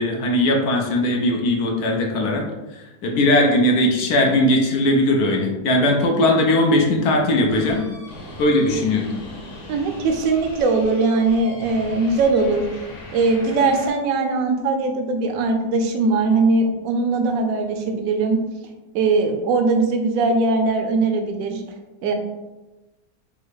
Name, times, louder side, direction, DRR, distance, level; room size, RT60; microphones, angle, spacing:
voice 1, 0.0-2.4 2.8-7.8 8.4-9.1, left 1 dB, 75° left, 1 dB, 1.2 m, -19 dB
sound 1, 7.5-13.9, left 1 dB, 55° left, 1.3 m, -39 dB
voice 2, 9.7-12.6 13.1-18.4 18.9-21.6 22.0-22.1, right 3 dB, 65° right, 5 dB, 0.9 m, -20 dB
5.4 x 2.4 x 3.1 m, 1.1 s
omnidirectional pair, 1.7 m